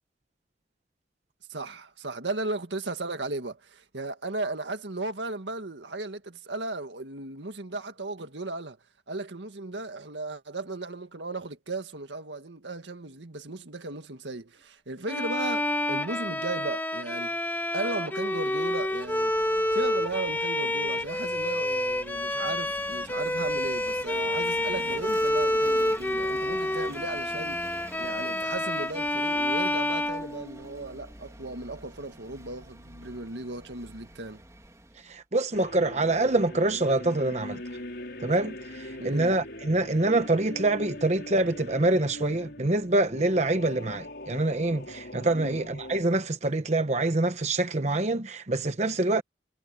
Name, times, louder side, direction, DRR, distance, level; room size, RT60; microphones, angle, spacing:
voice 1, 1.5-8.8 9.1-17.4 17.7-19.4 19.7-27.7 28.0-34.4 39.0-39.4 45.4-45.7, right 2 dB, 80° right, 1.9 m, -36 dB
Bowed string instrument, 15.1-30.9, left 1 dB, 10° left, 2.1 m, -28 dB
Vehicle / Engine, 18.7-35.2, right 1 dB, 20° right, 2.7 m, -48 dB
voice 2, 35.1-37.6 38.2-49.2, right 2 dB, 40° right, 1.0 m, -25 dB
sound 1, 35.5-46.0, left 1 dB, 65° left, 5.4 m, -42 dB
head